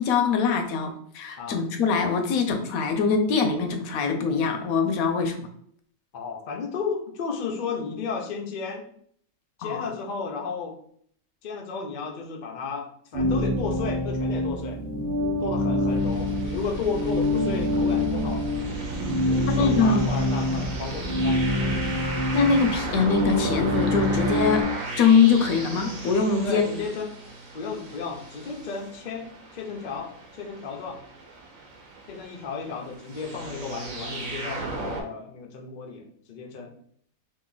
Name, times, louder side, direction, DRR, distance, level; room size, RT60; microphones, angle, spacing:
voice 1, 0.0-5.5 9.6-9.8 19.5-20.1 22.3-24.7 25.0-26.7, left 5 dB, 75° left, 5 dB, 1.0 m, -23 dB
voice 2, 6.1-8.9 9.6-10.8 11.4-14.8 15.4-18.6 19.2-21.7 26.4-27.2 27.5-31.0 32.1-36.7, left 5 dB, 60° left, 2 dB, 0.4 m, -34 dB
sound 1, 13.1-24.6, left 1 dB, 40° right, 1.1 m, -26 dB
sound 2, 15.9-35.0, right 2 dB, 65° right, 1.2 m, -36 dB
3.0 x 2.6 x 3.8 m, 0.63 s
omnidirectional pair, 1.5 m